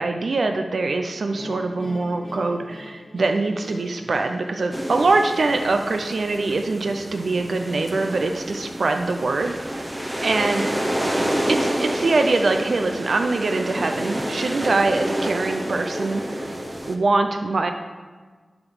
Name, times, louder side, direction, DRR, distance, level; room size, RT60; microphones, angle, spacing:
voice 1, 0.0-9.5 10.2-10.7 11.5-16.4 16.9-17.7, right 3 dB, 70° right, 5 dB, 0.5 m, -23 dB
sound 1, 1.3-8.4, left 1 dB, 30° left, 1.1 m, -42 dB
sound 2, 4.7-16.9, equal, 20° right, 1.0 m, -28 dB
11.0 x 3.9 x 6.1 m, 1.5 s
wide cardioid pair, 65°, 0 cm